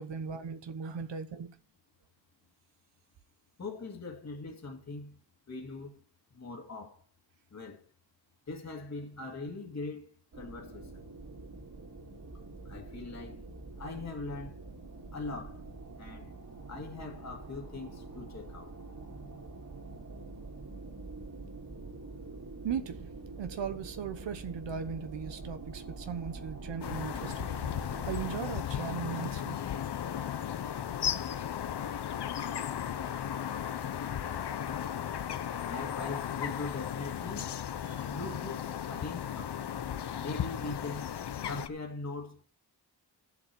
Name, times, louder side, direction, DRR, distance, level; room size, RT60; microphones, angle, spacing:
voice 1, 0.0-1.5 22.6-23.1 23.4-29.6 37.9-38.0, right 7 dB, 80° right, 1.1 m, -38 dB
voice 2, 3.6-5.2 5.5-6.0 6.3-7.0 7.5-7.9 8.5-11.0 12.7-13.5 13.8-14.6 15.1-15.6 16.0-16.3 16.7-18.8 35.7-37.5 38.1-39.7 40.2-41.1 41.5-42.4, left 3 dB, 40° left, 2.1 m, -41 dB
sound 1, 10.3-28.4, right 3 dB, 50° right, 3.3 m, -45 dB
sound 2, 26.8-41.7, left 9 dB, 65° left, 0.8 m, -35 dB
12.0 x 7.4 x 6.1 m
wide cardioid pair, 90°, 43 cm